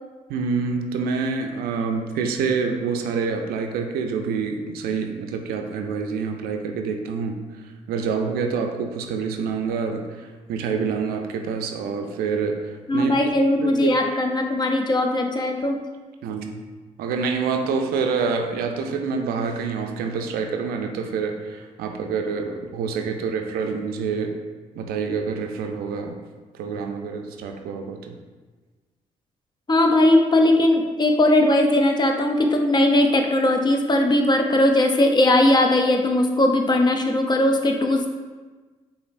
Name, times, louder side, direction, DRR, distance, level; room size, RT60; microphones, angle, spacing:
voice 1, 0.3-7.4 7.9-13.1 13.6-14.1 16.2-16.6 17.0-24.3 24.8-26.2 26.5-28.1, right 5 dB, 75° right, 4 dB, 0.4 m, -27 dB
voice 2, 12.9-15.8 29.7-38.1, left 1 dB, 25° left, 3 dB, 0.5 m, -19 dB
4.8 x 2.5 x 2.5 m, 1.3 s
hypercardioid pair, 55°, 16 cm